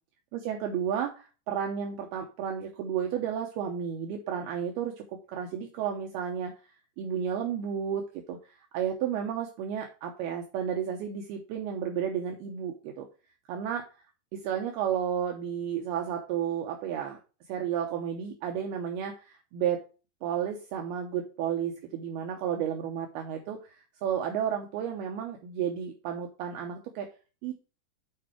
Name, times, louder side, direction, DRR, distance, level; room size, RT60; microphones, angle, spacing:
voice 1, 0.3-6.6 7.0-13.1 13.5-13.9 14.3-17.2 17.5-19.8 20.2-27.1 27.4-27.5, right 8 dB, 75° right, 2 dB, 2.7 m, -32 dB
8.7 x 4.7 x 4.4 m, 0.33 s
omnidirectional pair, 4.9 m